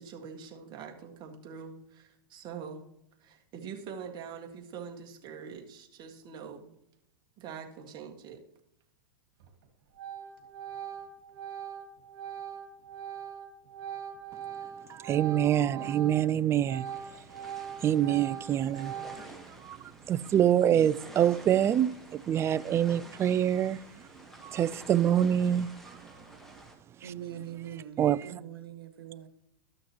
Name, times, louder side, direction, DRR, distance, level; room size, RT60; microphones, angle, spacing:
voice 1, 0.0-2.9 3.2-6.7 7.4-8.4, right 6 dB, 35° right, 1.7 m, -44 dB
Organ, 9.4-9.6 10.0-16.3 16.6-19.5, right 9 dB, 65° right, 2.0 m, -41 dB
voice 2, 14.9-17.2 17.8-23.8 24.4-26.1 27.0-27.1 28.0-28.4, right 10 dB, 20° right, 0.3 m, -26 dB
sound 1, 16.8-26.7, right 1 dB, ahead, 1.6 m, -50 dB
voice 3, 27.0-29.3, right 10 dB, 85° right, 1.3 m, -42 dB
13.0 x 6.3 x 3.0 m
hypercardioid pair, 120°, 12 cm